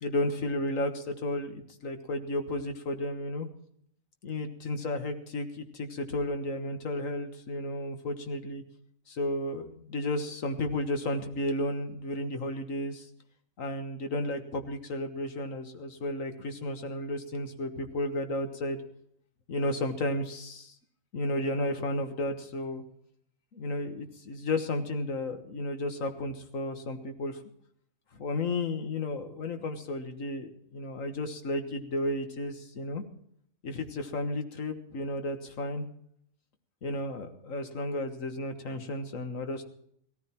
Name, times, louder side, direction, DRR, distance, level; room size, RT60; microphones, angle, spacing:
voice 1, 0.0-3.5 4.2-8.6 9.1-13.1 13.6-18.8 19.5-20.7 21.1-22.8 23.5-27.4 28.1-33.0 33.6-35.8 36.8-39.6, left 1 dB, 80° left, 7 dB, 1.8 m, -33 dB
17.0 x 14.0 x 4.4 m, 0.68 s
omnidirectional pair, 1.3 m